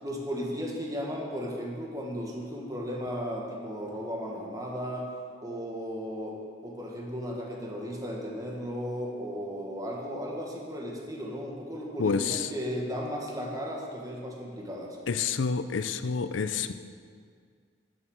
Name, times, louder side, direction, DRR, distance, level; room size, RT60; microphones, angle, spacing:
voice 1, 0.0-5.1 5.4-6.4 6.6-15.0, equal, 20° right, -1 dB, 1.5 m, -35 dB
voice 2, 12.0-12.5 15.1-16.7, left 5 dB, 85° left, 11 dB, 0.5 m, -28 dB
11.0 x 6.1 x 6.4 m, 2.1 s
head